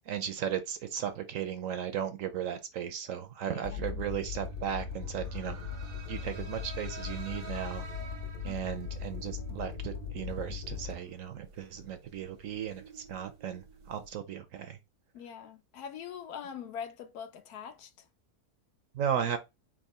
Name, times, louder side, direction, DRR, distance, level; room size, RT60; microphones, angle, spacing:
voice 1, 0.1-5.6 6.1-7.8 8.4-14.8 18.9-19.4, right 9 dB, 65° right, 0.9 m, -36 dB
voice 2, 3.5-4.0 8.4-8.7 15.1-17.9, left 7 dB, 75° left, 1.2 m, -43 dB
sound 1, 3.6-11.0, left 6 dB, 45° left, 0.7 m, -39 dB
sound 2, 4.8-14.2, right 4 dB, 85° right, 1.5 m, -51 dB
3.6 x 2.9 x 4.1 m
omnidirectional pair, 1.6 m